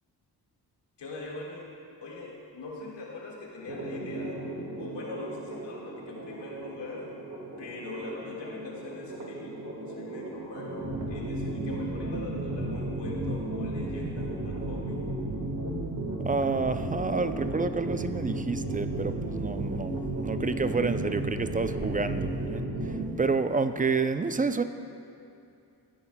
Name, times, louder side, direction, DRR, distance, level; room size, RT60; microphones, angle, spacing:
voice 1, 1.0-1.7 2.0-4.5 4.8-7.1 7.6-15.1, left 2 dB, 85° left, -3 dB, 1.9 m, -42 dB
sound 1, 3.7-23.0, right 1 dB, 45° right, 1.6 m, -34 dB
voice 2, 16.2-24.6, right 4 dB, 20° right, 10 dB, 0.4 m, -29 dB
14.5 x 9.9 x 2.2 m, 2.5 s
cardioid pair, 55°, 42 cm